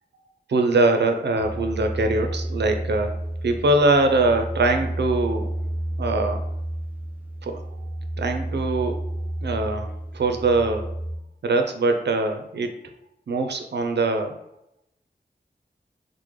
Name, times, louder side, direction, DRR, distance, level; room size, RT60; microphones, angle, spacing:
voice 1, 0.5-3.2 3.4-5.5 6.0-6.4 7.4-7.6 8.2-9.0 9.4-10.9 11.4-12.7 13.3-14.4, right 2 dB, 80° right, 5 dB, 0.4 m, -22 dB
sound 1, 1.4-11.2, right 1 dB, 10° right, 0.5 m, -31 dB
3.5 x 2.1 x 3.1 m, 0.84 s
wide cardioid pair, 55°, 17 cm